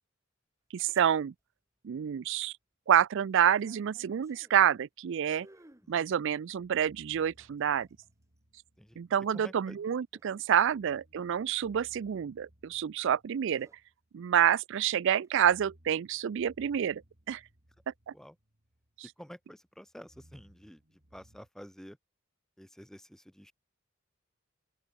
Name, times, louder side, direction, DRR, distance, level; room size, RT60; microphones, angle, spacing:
voice 1, 0.7-1.3 1.8-2.5 2.9-5.5 5.9-7.9 9.0-13.7 14.1-17.0 17.3-17.4 18.1-18.2, right 9 dB, 65° right, 0.4 m, -28 dB
sound 1, 0.8-1.1 1.4-1.5 3.4-4.7 5.3-5.9 7.2-8.4 10.1-10.5 12.4-12.7 13.3-13.8 15.1-15.4, right 1 dB, 15° right, 1.5 m, -60 dB
sound 2, 6.5-9.4 10.6-14.5 15.2-19.2 19.5-21.5, right 1 dB, 45° right, 3.1 m, -63 dB
voice 2, 9.3-9.8 18.1-18.4 19.0-22.0 22.6-23.5, equal, ahead, 1.0 m, -50 dB
open air
head